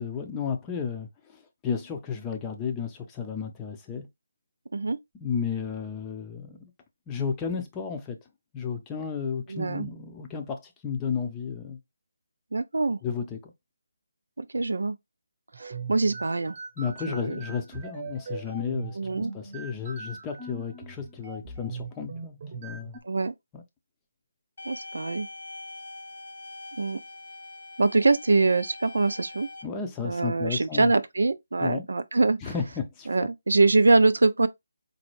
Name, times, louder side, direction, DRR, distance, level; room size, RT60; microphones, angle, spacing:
voice 1, 0.0-4.1 5.2-6.7 7.1-8.2 8.5-11.8 13.0-13.5 16.8-19.0 19.3-23.0 23.5-23.6 29.6-30.9 31.6-31.9 32.4-33.1, left 6 dB, 15° left, 0.6 m, -33 dB
voice 2, 9.5-9.9 12.5-13.0 14.4-15.0 15.6-16.6 17.1-17.4 19.0-19.3 23.0-23.3 24.7-25.3 26.8-27.0 27.8-29.5 30.0-32.5 33.1-34.5, right 3 dB, 75° right, 0.4 m, -24 dB
sound 1, 15.5-23.0, right 4 dB, 35° right, 0.9 m, -40 dB
sound 2, 24.6-29.6, left 2 dB, 60° left, 0.8 m, -43 dB
4.1 x 2.2 x 3.0 m
figure-of-eight pair, 160°, 0 cm